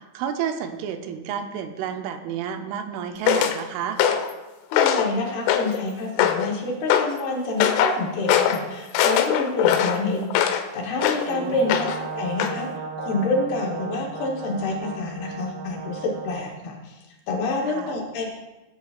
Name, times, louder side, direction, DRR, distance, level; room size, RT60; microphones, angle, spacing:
voice 1, 0.0-4.0 11.3-11.7 17.7-18.0, right 8 dB, 85° right, 6 dB, 3.3 m, -31 dB
sound 1, 3.3-3.6 4.0-4.3 4.7-5.1 5.5-5.8 6.2-6.5 6.9-7.1 7.6-8.0 8.3-8.6 8.9-10.6 11.0-11.3 11.7-12.1 12.4-12.6, left 9 dB, 90° left, 3.1 m, -21 dB
voice 2, 4.7-11.7 12.1-12.7 13.0-18.3, left 2 dB, 70° left, -1 dB, 2.7 m, -28 dB
Brass instrument, 11.4-16.5, right 5 dB, 60° right, 2.8 m, -35 dB
18.5 x 8.3 x 2.4 m, 1.1 s
omnidirectional pair, 5.5 m